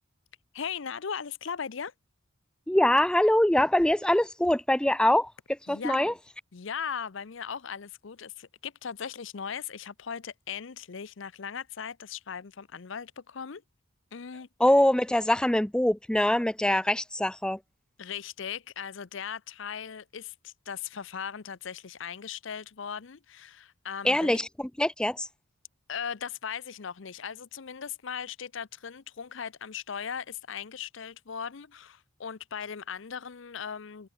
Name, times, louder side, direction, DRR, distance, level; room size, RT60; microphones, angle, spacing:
voice 1, 0.5-1.9 5.7-6.1 6.5-13.6 14.1-14.5 18.0-24.4 25.9-34.1, left 7 dB, 65° left, 0.6 m, -38 dB
voice 2, 2.7-6.1 14.6-17.6 24.0-25.3, left 1 dB, 5° left, 0.4 m, -24 dB
head